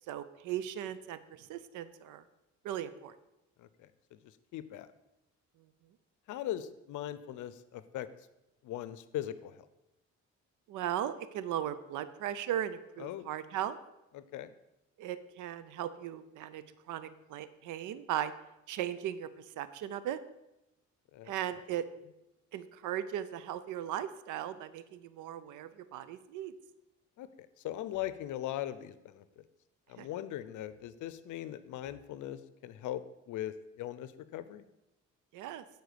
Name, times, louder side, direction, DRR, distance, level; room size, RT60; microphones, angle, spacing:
voice 1, 0.1-2.2 2.6-3.1 10.7-13.8 15.0-16.6 16.9-18.3 18.7-19.3 19.6-20.2 21.3-21.9 22.5-26.5 30.0-30.1 35.3-35.6, right 11 dB, 90° right, 14 dB, 0.6 m, -37 dB
voice 2, 3.6-4.2 4.5-4.9 6.3-8.1 8.6-9.7 13.0-13.3 14.1-14.5 21.1-21.3 27.2-29.4 29.9-34.7, left 12 dB, 80° left, 14 dB, 0.6 m, -40 dB
7.9 x 4.5 x 6.7 m, 0.91 s
cardioid pair, 90°, 30 cm